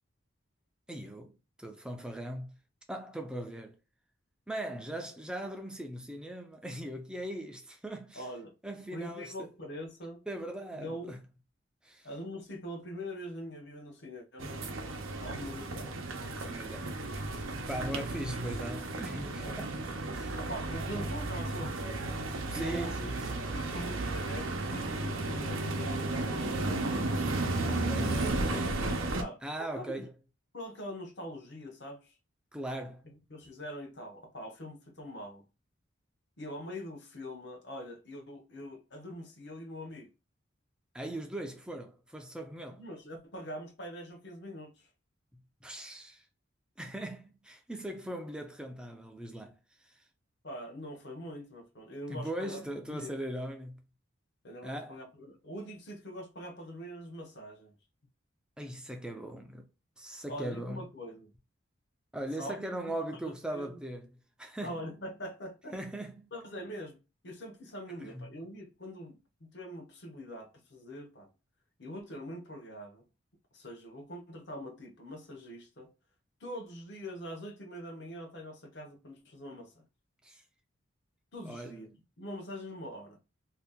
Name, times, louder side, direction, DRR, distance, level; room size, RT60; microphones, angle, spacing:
voice 1, 0.9-2.6 2.9-3.8 4.5-8.3 8.6-9.5 10.3-11.2 11.8-12.1 16.4-16.9 17.5-19.8 20.1-20.4 22.5-23.6 27.6-28.2 29.4-30.1 32.5-33.1 40.9-42.8 45.6-46.3 46.8-50.0 52.1-53.8 54.6-55.0 58.6-59.7 60.0-60.9 62.1-64.1 64.4-64.9 65.7-66.3 68.0-68.3 80.2-80.4 81.4-81.8, right 1 dB, 5° right, 0.4 m, -40 dB
voice 2, 8.1-8.6 8.9-10.2 10.8-11.2 12.0-14.7 15.2-15.9 19.4-19.6 20.4-23.0 23.5-26.8 28.1-28.8 29.2-29.4 29.7-30.0 30.5-32.1 33.0-35.5 36.4-40.1 42.8-44.9 50.4-52.6 52.9-53.2 54.4-57.7 60.3-61.3 62.4-62.7 63.2-63.8 64.6-65.8 66.3-71.3 71.8-73.1 73.5-75.9 76.4-79.8 81.3-83.2, equal, 55° left, 0.8 m, -43 dB
sound 1, 14.4-29.2, right 2 dB, 80° right, 0.6 m, -34 dB
2.7 x 2.3 x 3.5 m
head